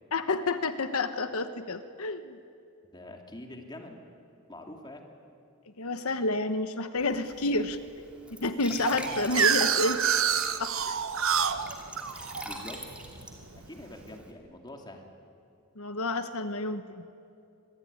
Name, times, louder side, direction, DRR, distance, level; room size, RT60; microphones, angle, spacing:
voice 1, 0.1-2.4 5.8-7.8 8.4-10.0 10.6-11.0 15.8-17.0, left 2 dB, 85° left, 9 dB, 1.2 m, -29 dB
voice 2, 2.9-4.0 4.5-5.0 8.7-9.6 12.4-12.8 13.6-15.1, left 1 dB, 20° left, 2 dB, 2.7 m, -45 dB
Glass / Trickle dribble / Fill (with liquid), 7.0-14.3, right 1 dB, 5° right, 2.7 m, -45 dB
sound 1, 8.8-13.6, right 8 dB, 65° right, 1.1 m, -28 dB
25.0 x 22.0 x 9.8 m, 2.5 s
head